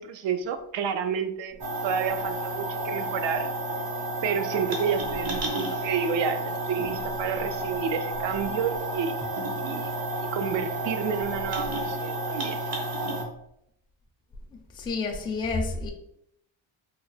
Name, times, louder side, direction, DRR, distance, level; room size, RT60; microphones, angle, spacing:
voice 1, 0.0-3.5 4.2-9.2 9.6-9.9 10.3-12.6, right 7 dB, 70° right, 9 dB, 0.5 m, -30 dB
sound 1, 1.6-13.2, right 1 dB, 50° right, 1.0 m, -31 dB
voice 2, 14.5-15.9, left 3 dB, 10° left, 2 dB, 0.3 m, -30 dB
3.5 x 2.1 x 3.2 m, 0.75 s
cardioid pair, 125°, 46 cm